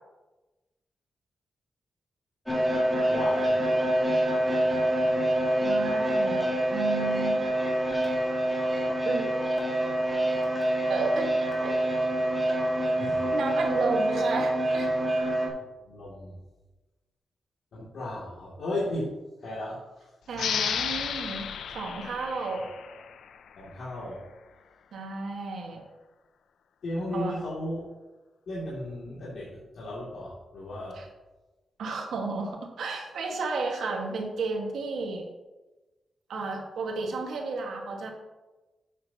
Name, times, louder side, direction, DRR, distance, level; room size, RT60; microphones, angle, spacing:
sound 1, 2.5-15.5, right 1 dB, 5° left, 2.9 m, -26 dB
voice 1, 3.1-3.6 13.0-13.3 15.8-16.4 17.7-19.1 19.4-20.1 23.6-24.2 26.8-27.9 28.5-31.0, left 1 dB, 70° left, -8 dB, 2.6 m, -35 dB
voice 2, 5.6-6.4 6.7-7.4 9.0-9.3 10.9-11.3 11.6-11.7 13.3-14.9 20.3-22.6 24.9-25.8 27.1-27.4 30.9-31.1 31.8-35.3 36.3-38.1, right 4 dB, 90° right, 1 dB, 1.7 m, -32 dB
sound 2, 20.3-23.6, left 8 dB, 85° left, 0.5 m, -33 dB
11.5 x 8.3 x 2.9 m, 1.1 s
cardioid pair, 105°, 0 cm